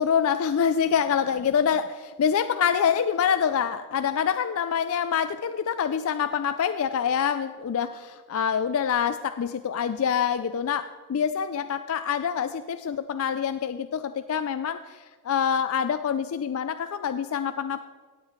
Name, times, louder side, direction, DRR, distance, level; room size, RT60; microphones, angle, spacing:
voice 1, 0.0-17.9, left 7 dB, 70° left, 11 dB, 0.4 m, -26 dB
17.5 x 7.5 x 4.5 m, 1.5 s
head